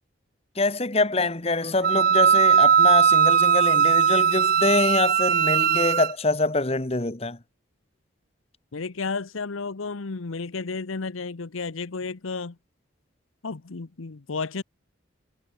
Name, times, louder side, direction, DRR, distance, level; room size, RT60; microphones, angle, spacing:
voice 1, 0.6-7.4, left 2 dB, 30° left, 1.3 m, -25 dB
Wind instrument woodwind instrument, 1.8-6.1, right 7 dB, 45° right, 0.6 m, -19 dB
voice 2, 8.7-12.6 13.4-14.6, left 4 dB, 85° left, 0.9 m, -32 dB
head